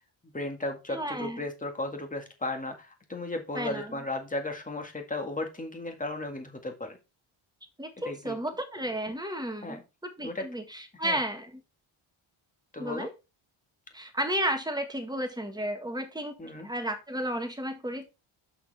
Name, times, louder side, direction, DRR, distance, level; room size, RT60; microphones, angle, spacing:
voice 1, 0.3-7.0 8.0-8.4 9.6-9.8 10.2-10.5 11.0-11.2 12.7-13.1 16.4-16.7, left 2 dB, 15° left, 4 dB, 1.9 m, -35 dB
voice 2, 0.9-1.4 3.5-4.0 7.8-9.8 10.2-11.6 12.8-13.1 13.9-16.4 16.6-18.1, right 1 dB, 10° right, 5 dB, 1.6 m, -32 dB
6.8 x 5.8 x 4.1 m, 0.27 s
cardioid pair, 120°, 50 cm